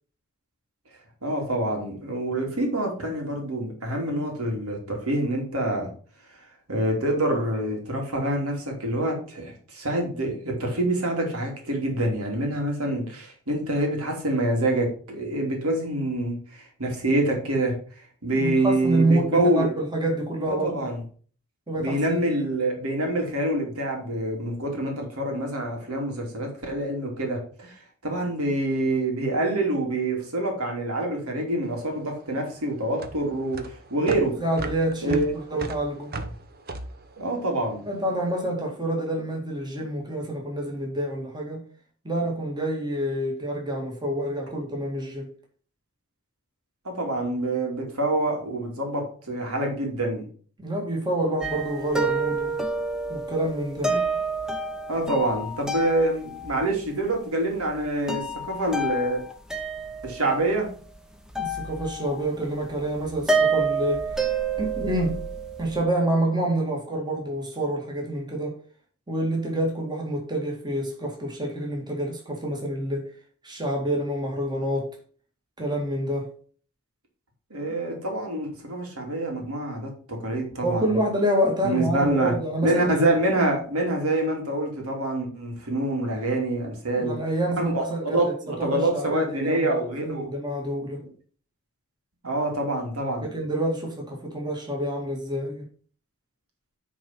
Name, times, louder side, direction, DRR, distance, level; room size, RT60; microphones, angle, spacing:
voice 1, 1.2-5.9 6.7-19.7 20.4-21.0 21.8-34.3 35.0-35.3 37.2-37.8 46.8-50.3 53.9-54.0 54.9-59.2 60.0-60.7 77.5-81.0 81.6-82.3 82.6-87.1 87.6-90.3 92.2-93.3, right 1 dB, 75° right, 2.9 m, -26 dB
voice 2, 18.3-20.8 21.7-22.2 34.4-36.1 37.8-41.6 42.0-45.3 50.6-52.6 53.1-54.0 61.4-64.3 64.6-65.2 65.6-68.6 69.1-73.1 73.4-75.0 75.6-76.3 80.6-83.0 87.0-88.3 88.6-89.7 90.0-91.1 93.2-95.7, right 1 dB, 20° right, 2.3 m, -27 dB
sound 1, 31.6-38.2, right 2 dB, 45° right, 0.9 m, -37 dB
sound 2, 51.4-56.7 57.7-57.8 58.1-60.9 61.3-62.3 62.6-65.8, right 3 dB, 5° right, 0.9 m, -29 dB
9.8 x 4.3 x 5.8 m
head